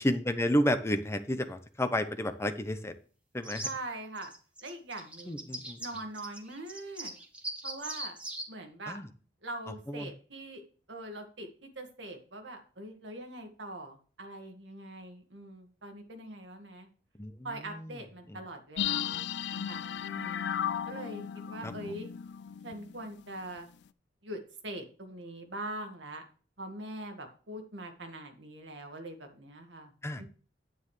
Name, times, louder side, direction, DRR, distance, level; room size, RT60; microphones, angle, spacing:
voice 1, 0.0-2.9 3.3-3.7 5.3-5.8 8.9-9.0 9.9-10.1 17.2-17.3 18.3-18.4 21.6-21.7 30.0-30.2, left 1 dB, 15° left, 9 dB, 0.8 m, -30 dB
sound 1, 3.4-3.7 4.1-8.4, right 1 dB, 5° right, 1.4 m, -40 dB
voice 2, 3.6-4.3 4.6-5.5 5.8-7.2 7.6-8.2 8.5-9.0 9.4-10.6 10.9-16.9 17.4-20.4 20.9-22.1 22.6-23.7 24.2-26.2 26.6-30.2, right 1 dB, 85° right, 4 dB, 1.9 m, -43 dB
sound 2, 18.8-23.2 23.5-23.6, left 9 dB, 70° left, 0.4 m, -35 dB
9.4 x 9.4 x 3.2 m, 0.39 s
head